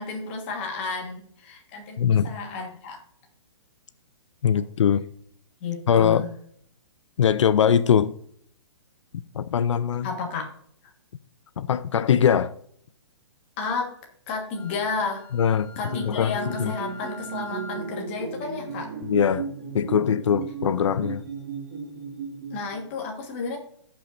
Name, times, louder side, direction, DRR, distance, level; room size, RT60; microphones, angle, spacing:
voice 1, 0.0-3.0 5.6-6.3 10.0-10.5 13.6-13.9 14.3-15.2 15.8-18.9 22.5-23.6, left 4 dB, 25° left, 1.5 m, -32 dB
voice 2, 2.0-2.3 4.4-5.0 5.9-6.2 7.2-8.2 9.1-10.1 11.6-12.5 15.3-15.7 16.0-16.7 19.0-19.5 19.7-21.2, left 8 dB, 80° left, 0.5 m, -21 dB
Wind instrument woodwind instrument, 14.5-17.9, left 3 dB, 50° left, 3.5 m, -44 dB
sound 1, 15.8-22.9, right 5 dB, 30° right, 1.9 m, -35 dB
16.5 x 5.6 x 2.6 m
hypercardioid pair, 175°, 15 cm